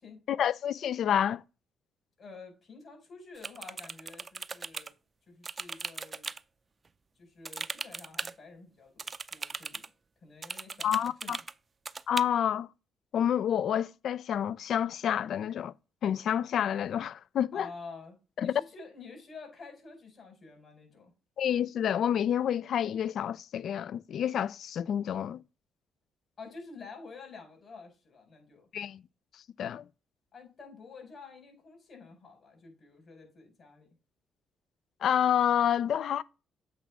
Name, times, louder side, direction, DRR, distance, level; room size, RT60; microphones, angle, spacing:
voice 1, 0.3-1.4 10.8-11.4 12.1-12.7 13.1-15.7 16.0-17.7 18.4-18.5 21.4-25.4 28.7-29.0 29.6-29.8 35.0-36.2, left 9 dB, 65° left, 0.3 m, -28 dB
voice 2, 2.2-4.9 5.3-6.3 7.2-9.8 10.2-11.4 17.5-21.1 26.4-28.7 30.3-33.9, left 4 dB, 50° left, 5.2 m, -49 dB
sound 1, 3.4-4.9 5.4-6.4 7.4-8.3 9.0-9.9 10.4-11.5 11.9-12.2, right 4 dB, 35° right, 0.4 m, -38 dB
8.0 x 3.6 x 6.0 m
cardioid pair, 75°, 0 cm